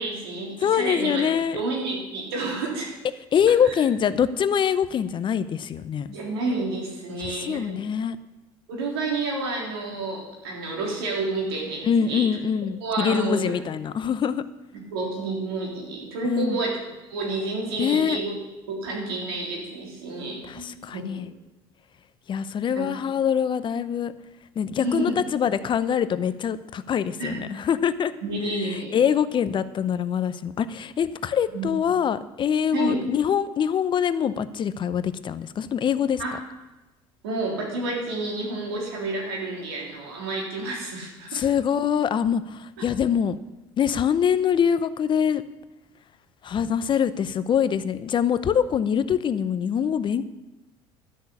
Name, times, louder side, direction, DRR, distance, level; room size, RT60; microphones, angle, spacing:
voice 1, 0.0-1.3 1.5-3.0 3.6-3.8 6.1-7.8 8.7-12.3 12.8-13.5 14.9-16.8 17.1-18.3 18.7-21.3 22.7-22.9 24.8-25.3 27.2-27.4 28.2-29.0 31.5-31.7 32.7-33.1 36.2-36.4 37.2-41.4 42.8-42.9, right 2 dB, 90° right, -1 dB, 3.6 m, -30 dB
voice 2, 0.6-1.6 3.3-6.2 7.3-8.2 11.8-14.4 16.2-16.6 17.8-18.2 20.5-21.3 22.3-24.1 24.6-28.1 28.9-36.2 41.3-43.4 43.8-45.4 46.4-50.2, left 8 dB, 40° left, 14 dB, 0.7 m, -24 dB
12.0 x 6.4 x 8.4 m, 1.0 s
supercardioid pair, 85°, 12 cm